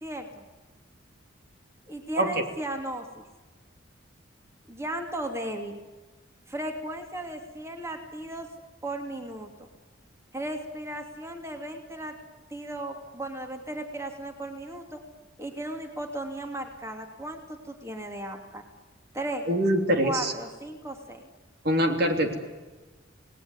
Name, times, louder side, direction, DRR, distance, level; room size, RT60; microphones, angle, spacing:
voice 1, 0.0-0.4 1.9-3.3 4.7-5.8 6.5-8.5 8.8-9.7 10.3-12.1 12.5-15.0 15.4-18.6 19.1-19.4 20.0-21.2, right 1 dB, 15° right, 4 dB, 2.9 m, -36 dB
voice 2, 19.5-20.3 21.6-22.4, right 1 dB, 55° right, 5 dB, 3.1 m, -24 dB
28.5 x 19.5 x 9.8 m, 1.2 s
head